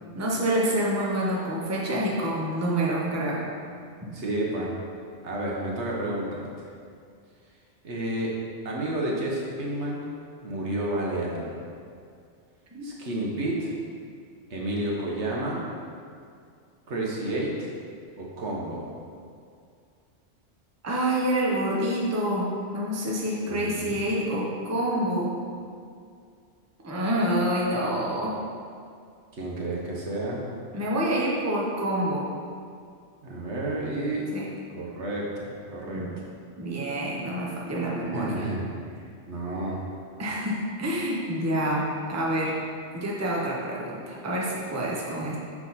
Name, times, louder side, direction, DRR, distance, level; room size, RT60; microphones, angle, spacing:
voice 1, 0.1-3.4 12.7-12.9 20.8-25.3 26.8-28.4 30.7-32.3 34.3-34.5 35.9-36.1 36.6-38.5 40.2-42.6 42.9-45.4, right 1 dB, 15° right, -4 dB, 0.7 m, -27 dB
voice 2, 4.1-4.7 5.2-6.7 7.8-8.3 8.6-10.0 10.4-11.6 12.8-13.7 14.5-15.6 16.9-17.7 18.2-18.9 23.5-23.9 29.3-30.4 33.2-34.3 34.7-36.1 38.1-38.7 39.3-39.8, right 1 dB, 75° right, -3 dB, 1.3 m, -30 dB
6.0 x 4.7 x 4.1 m, 2.3 s
omnidirectional pair, 1.2 m